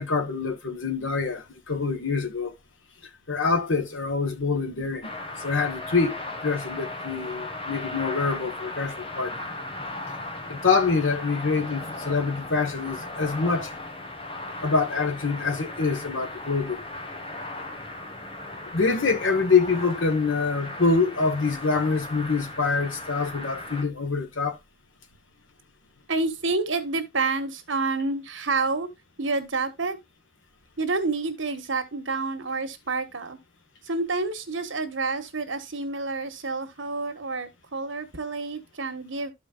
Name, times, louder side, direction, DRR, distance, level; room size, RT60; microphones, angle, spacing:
voice 1, 0.0-2.5 3.3-5.1 5.4-9.4 10.5-13.7 14.6-16.8 18.7-24.6, left 4 dB, 85° left, 1.5 m, -25 dB
sound 1, 5.0-23.8, left 2 dB, 30° left, 1.5 m, -37 dB
voice 2, 26.1-28.9 29.2-30.0 30.8-33.4 33.8-39.3, right 3 dB, 85° right, 1.5 m, -28 dB
13.0 x 5.1 x 2.5 m
head